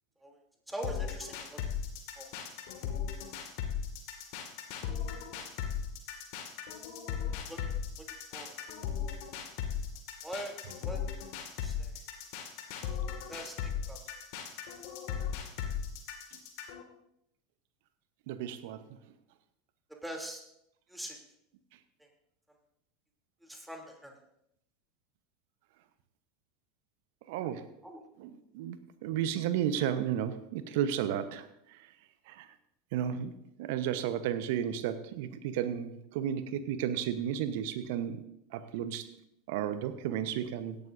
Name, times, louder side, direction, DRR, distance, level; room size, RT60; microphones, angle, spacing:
voice 1, 0.7-1.6 2.2-2.3 7.5-7.6 8.0-8.5 10.2-10.6 10.8-11.0 11.6-12.0 13.3-14.0 20.0-20.4 20.9-21.2 23.4-24.2 27.8-28.0 40.0-40.1, right 1 dB, 5° right, 1 dB, 3.1 m, -42 dB
sound 1, 0.8-16.8, left 8 dB, 55° left, 2.1 m, -37 dB
voice 2, 18.3-18.8 27.3-27.7 28.2-31.9 32.3-32.5 32.9-33.3 33.6-38.2 38.5-39.1 39.5-40.8, right 9 dB, 60° right, 11 dB, 1.0 m, -33 dB
17.0 x 12.0 x 2.7 m, 0.77 s
figure-of-eight pair, 80°, 0 cm